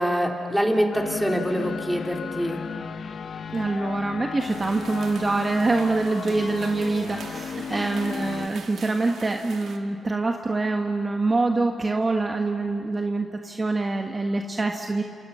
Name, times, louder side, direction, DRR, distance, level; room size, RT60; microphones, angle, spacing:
voice 1, 0.0-2.6 6.2-6.4 7.7-8.0, equal, 5° right, 1 dB, 3.8 m, -25 dB
sound 1, 0.9-8.5, left 6 dB, 60° left, 0.8 m, -35 dB
voice 2, 3.5-15.0, right 3 dB, 35° right, 3 dB, 1.5 m, -25 dB
sound 2, 4.4-9.8, right 6 dB, 70° right, 1.8 m, -43 dB
29.0 x 26.0 x 5.8 m, 2.5 s
supercardioid pair, 55°, 0 cm